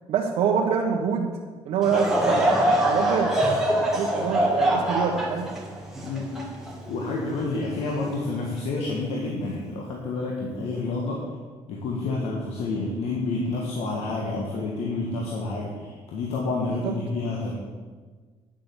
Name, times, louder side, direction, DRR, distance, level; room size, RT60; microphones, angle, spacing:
voice 1, 0.1-1.3 1.6-2.5 2.8-3.3 3.9-5.5 16.8-16.9, right 6 dB, 70° right, -1 dB, 1.1 m, -25 dB
Laughter / Crowd, 1.8-7.3 7.8-7.9 8.7-9.0, right 1 dB, 5° right, 2.0 m, -24 dB
voice 2, 6.0-6.4 6.9-11.2 11.7-17.5, left 3 dB, 80° left, -2 dB, 1.8 m, -29 dB
10.5 x 7.7 x 7.1 m, 1.5 s
cardioid pair, 145°, 11 cm